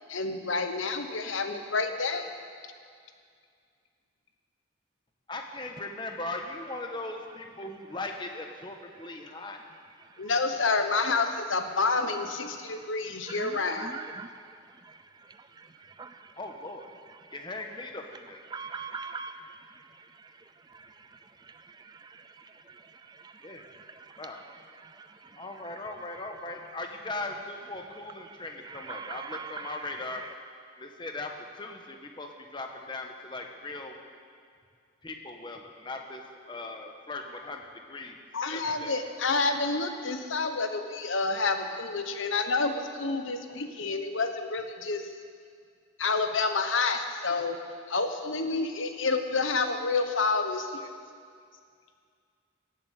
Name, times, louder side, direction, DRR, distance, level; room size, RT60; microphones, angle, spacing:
voice 1, 0.1-2.3 10.2-14.0 38.3-45.1 46.0-47.6 47.9-50.9, left 3 dB, 75° left, 7 dB, 1.1 m, -29 dB
voice 2, 5.3-9.6 16.4-16.9 17.3-18.4 23.4-23.7 24.2-24.4 25.4-30.2 30.7-31.3 31.6-34.0 35.0-36.2 36.5-38.2 38.5-39.0, left 2 dB, 25° left, 3 dB, 1.2 m, -39 dB
voice 3, 13.4-14.3 16.0-16.1 18.5-19.4 28.7-29.7, right 5 dB, 20° right, 10 dB, 0.4 m, -39 dB
17.0 x 7.6 x 8.4 m, 2.2 s
head